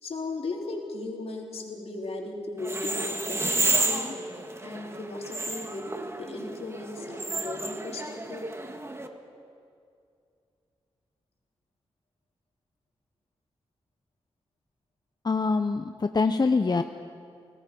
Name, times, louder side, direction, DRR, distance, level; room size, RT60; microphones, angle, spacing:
voice 1, 0.0-4.2 4.6-8.4, left 2 dB, 65° left, 0 dB, 3.8 m, -36 dB
sound 1, 2.6-9.1, right 2 dB, 25° right, 2.1 m, -31 dB
voice 2, 15.2-16.8, left 4 dB, 40° left, 8 dB, 0.9 m, -24 dB
30.0 x 18.5 x 5.5 m, 2.4 s
cardioid pair, 45°, 11 cm